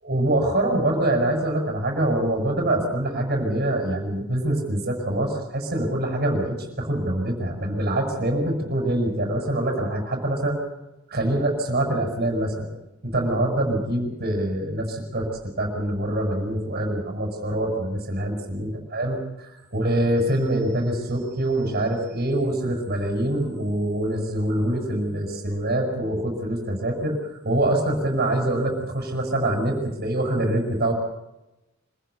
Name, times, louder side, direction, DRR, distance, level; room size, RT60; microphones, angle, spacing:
voice 1, 0.0-10.6 11.1-12.7 13.0-19.2 19.7-27.2 27.4-30.9, right 1 dB, 45° right, 3 dB, 6.9 m, -24 dB
26.5 x 16.0 x 8.2 m, 0.95 s
head